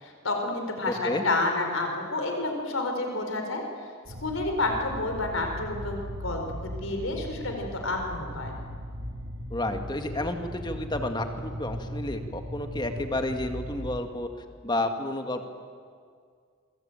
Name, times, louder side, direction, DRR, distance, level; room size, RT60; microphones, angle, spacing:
voice 1, 0.0-3.6 4.2-8.6, left 2 dB, 70° left, 4 dB, 4.4 m, -29 dB
voice 2, 0.9-1.2 9.5-14.3 14.6-15.5, left 1 dB, 20° left, 6 dB, 1.9 m, -31 dB
sound 1, 4.0-14.0, equal, 60° right, 5.6 m, -38 dB
27.5 x 22.5 x 9.0 m, 2.1 s
head